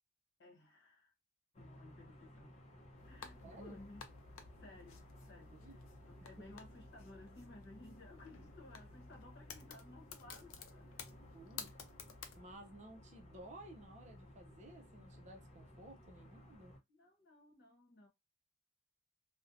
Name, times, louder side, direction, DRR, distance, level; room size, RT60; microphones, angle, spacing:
voice 1, 0.4-1.1 1.6-2.6 3.0-5.7 6.1-11.1 16.9-18.1, left 2 dB, 55° left, 0.9 m, -58 dB
sound 1, 1.5-16.8, left 1 dB, 35° left, 0.6 m, -59 dB
sound 2, 3.0-12.4, left 6 dB, 80° left, 0.5 m, -54 dB
voice 2, 3.4-3.8 5.5-5.8 6.4-6.5 11.3-11.7 12.4-16.7, right 1 dB, 35° right, 0.5 m, -55 dB
2.5 x 2.1 x 2.5 m
head